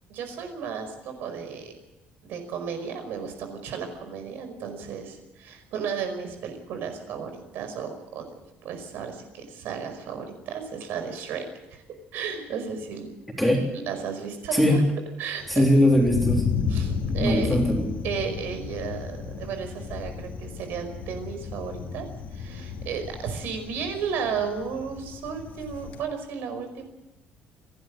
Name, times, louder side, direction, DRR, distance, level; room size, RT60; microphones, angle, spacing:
voice 1, 0.1-1.7 2.2-8.3 8.6-11.5 11.7-11.8 12.1-13.1 13.7-14.8 15.2-15.6 16.7-17.6 18.0-26.8, right 6 dB, 70° right, 7 dB, 5.2 m, -34 dB
voice 2, 13.4-13.7 14.5-14.9 15.5-16.5 17.2-17.9, left 1 dB, ahead, -1 dB, 3.6 m, -20 dB
Thunder, 15.4-26.0, left 6 dB, 50° left, 2.7 m, -33 dB
29.5 x 12.0 x 9.0 m, 0.94 s
cardioid pair, 180°, 4 cm